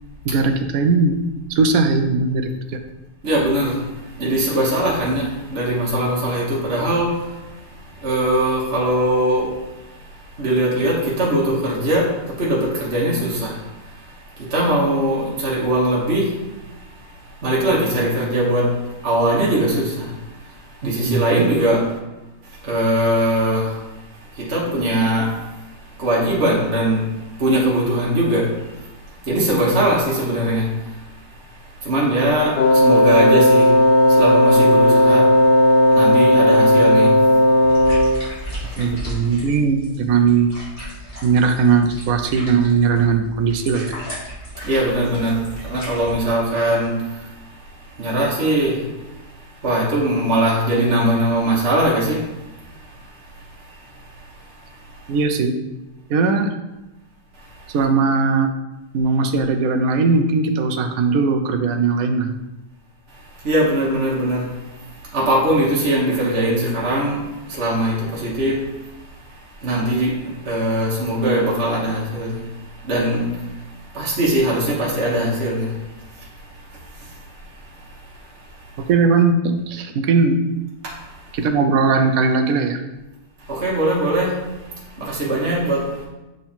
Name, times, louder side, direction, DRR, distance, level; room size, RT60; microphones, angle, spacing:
voice 1, 0.2-1.1 1.6-2.8 20.8-21.5 29.7-29.8 38.8-40.5 41.2-44.0 55.1-55.5 56.1-56.5 57.7-58.5 58.9-62.4 78.9-79.4 79.7-80.4 81.3-82.8, right 4 dB, 65° right, 1.0 m, -18 dB
voice 2, 3.2-22.0 22.4-38.9 44.6-55.1 57.3-57.7 63.1-78.9 80.8-81.4 83.4-86.1, right 1 dB, 40° right, 1.4 m, -22 dB
Wind instrument woodwind instrument, 32.6-38.3, left 1 dB, 60° left, 0.6 m, -14 dB
sound 1, 37.7-46.1, equal, 20° left, 2.4 m, -35 dB
7.3 x 3.9 x 4.3 m
omnidirectional pair, 1.8 m